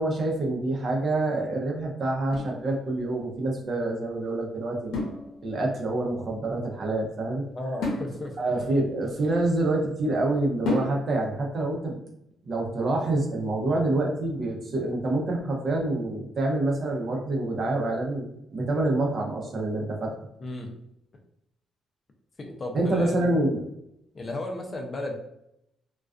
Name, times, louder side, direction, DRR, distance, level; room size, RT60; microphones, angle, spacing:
voice 1, 0.0-5.0 5.4-7.4 8.4-12.0 12.4-20.1 22.7-23.7, right 2 dB, 50° right, 0 dB, 0.6 m, -27 dB
sound 1, 2.3-3.3 4.9-5.8 7.8-9.8 10.7-11.4, left 2 dB, 85° left, 0.7 m, -33 dB
voice 2, 7.5-8.4 20.4-20.7 22.4-23.1 24.1-25.1, left 2 dB, 35° left, 2 dB, 0.5 m, -34 dB
2.3 x 2.2 x 2.4 m, 0.81 s
cardioid pair, 90°, 0 cm